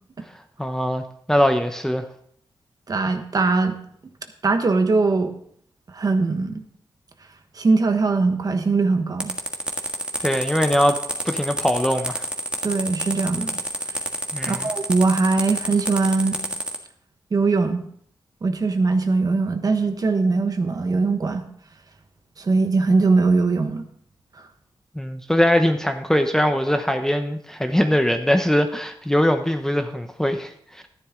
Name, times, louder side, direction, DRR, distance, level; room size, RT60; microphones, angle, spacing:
voice 1, 0.6-2.1 10.2-11.0 11.2-12.3 14.3-14.7 24.9-30.9, equal, 5° left, 6 dB, 0.8 m, -21 dB
voice 2, 2.9-3.8 4.4-5.3 5.9-6.6 7.6-9.3 12.6-13.6 14.5-16.4 17.3-17.8 18.4-21.4 22.4-23.8, right 3 dB, 45° right, 7 dB, 1.3 m, -21 dB
sound 1, 9.2-16.8, right 1 dB, 10° right, 1.6 m, -28 dB
12.5 x 11.0 x 3.7 m, 0.63 s
wide cardioid pair, 115°, 9 cm